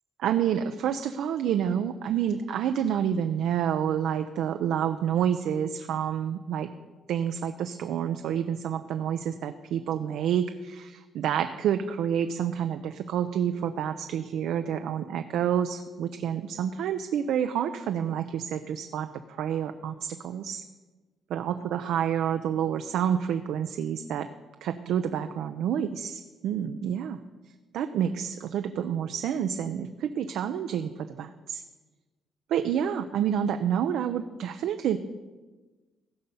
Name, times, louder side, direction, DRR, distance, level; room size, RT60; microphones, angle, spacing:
voice 1, 0.2-6.7 7.1-20.6 21.3-24.3 24.6-27.2 27.7-31.6 32.5-35.0, right 9 dB, 80° right, 8 dB, 0.5 m, -28 dB
15.5 x 5.4 x 7.0 m, 1.3 s
cardioid pair, 90°, 0 cm